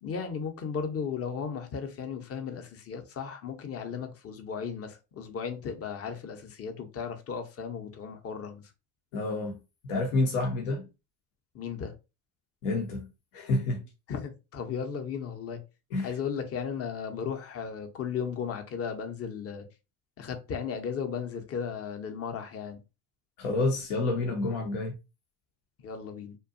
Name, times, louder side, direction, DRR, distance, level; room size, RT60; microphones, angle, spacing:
voice 1, 0.0-8.7 11.5-11.9 14.1-15.6 16.0-19.7 20.2-22.8 25.8-26.4, left 6 dB, 30° left, 0.7 m, -35 dB
voice 2, 9.1-9.6 9.8-10.9 12.6-13.8 15.9-16.1 23.4-24.9, left 2 dB, 75° left, 0.7 m, -29 dB
2.7 x 2.2 x 2.5 m
hypercardioid pair, 70°, 46 cm